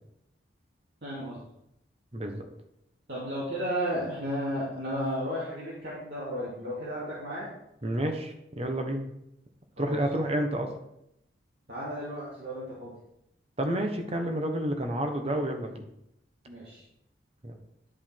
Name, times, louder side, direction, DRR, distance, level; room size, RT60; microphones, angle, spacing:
voice 1, 1.0-1.4 3.1-7.5 9.8-10.0 11.7-12.9 16.5-16.8, equal, 60° right, -8 dB, 2.5 m, -33 dB
voice 2, 2.1-2.5 7.8-9.1 9.8-10.7 13.6-15.8 17.4-17.6, right 1 dB, 35° right, 4 dB, 1.1 m, -30 dB
11.0 x 5.4 x 4.5 m, 0.81 s
head